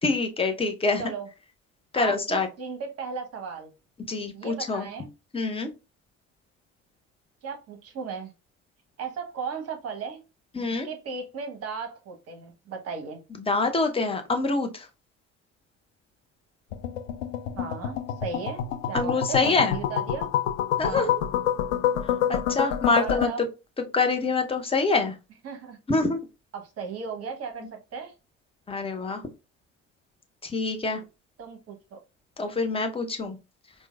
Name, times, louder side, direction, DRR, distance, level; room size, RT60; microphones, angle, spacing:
voice 1, 0.0-1.0 1.9-2.5 4.1-4.9 5.3-5.7 10.5-10.9 13.4-14.9 18.9-19.8 20.8-21.2 22.3-23.3 23.9-25.1 25.9-26.2 28.7-29.2 30.4-31.0 32.4-33.4, left 3 dB, 15° left, 6 dB, 0.6 m, -25 dB
voice 2, 1.9-3.7 4.3-5.1 7.4-8.3 9.0-10.2 10.6-13.2 17.6-20.3 20.8-21.1 22.9-23.5 25.4-25.8 26.5-28.1 31.4-32.0, right 5 dB, 40° right, 5 dB, 0.9 m, -36 dB
sound 1, 16.7-23.3, left 10 dB, 70° left, 0.5 m, -27 dB
4.4 x 2.1 x 2.3 m, 0.28 s
figure-of-eight pair, 60°, 38 cm